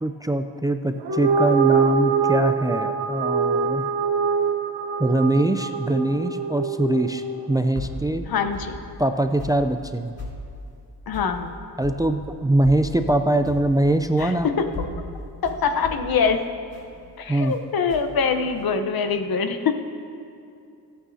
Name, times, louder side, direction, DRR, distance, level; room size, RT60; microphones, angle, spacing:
voice 1, 0.0-3.9 5.0-8.3 9.0-10.2 11.8-14.5 17.3-17.5, right 1 dB, 10° right, 7 dB, 0.4 m, -22 dB
sound 1, 1.0-7.6, right 5 dB, 80° right, 1.1 m, -24 dB
sound 2, 7.7-8.0 8.5-8.8 9.4-9.6 10.2-10.4 11.1-11.4 11.8-12.0 12.6-12.9 13.4-13.8 14.2-14.4 14.7-17.6 17.9-18.6, left 3 dB, 40° left, 2.9 m, -36 dB
voice 2, 8.3-8.8 11.1-11.5 14.2-14.7 15.4-16.4 17.2-19.7, left 5 dB, 65° left, 7 dB, 0.9 m, -24 dB
26.0 x 9.0 x 2.8 m, 2.6 s
cardioid pair, 90°, 38 cm